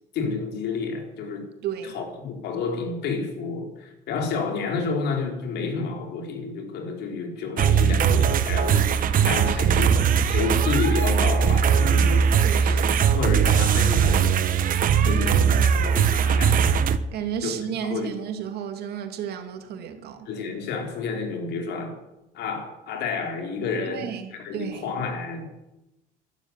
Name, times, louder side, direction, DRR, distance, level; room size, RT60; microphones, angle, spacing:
voice 1, 0.1-1.5 1.8-10.0 10.3-12.3 12.7-12.8 13.1-14.3 15.0-16.9 17.4-17.5 17.9-18.1 20.3-22.0 22.3-25.5, left 4 dB, 80° left, 4.3 m, -30 dB
voice 2, 1.6-2.0 9.1-10.0 12.4-13.0 15.0-15.5 17.1-20.3 23.9-24.9, right 8 dB, 70° right, 2.7 m, -33 dB
sound 1, 7.6-17.0, right 7 dB, 55° right, 1.2 m, -20 dB
13.0 x 11.5 x 9.9 m
cardioid pair, 110°, 17 cm